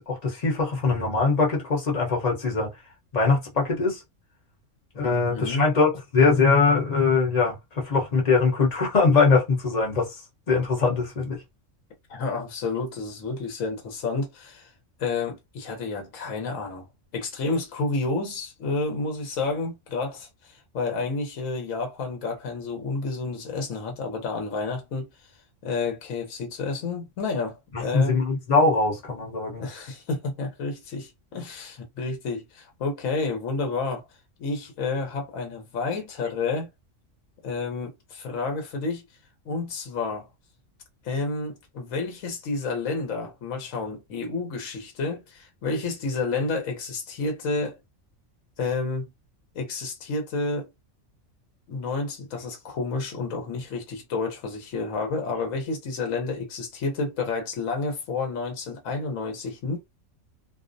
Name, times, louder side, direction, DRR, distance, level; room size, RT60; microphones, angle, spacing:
voice 1, 0.0-2.7 3.1-4.0 4.9-10.1 10.5-11.4 27.7-29.7, left 4 dB, 35° left, 0.9 m, -22 dB
voice 2, 5.0-5.7 12.1-14.7 15.0-16.9 17.1-25.3 25.6-28.2 29.6-34.1 34.4-36.7 37.4-39.0 39.4-40.3 41.0-47.8 48.6-49.1 49.5-50.7 51.7-59.8, left 3 dB, 80° left, 1.1 m, -30 dB
2.5 x 2.0 x 2.5 m
omnidirectional pair, 1.3 m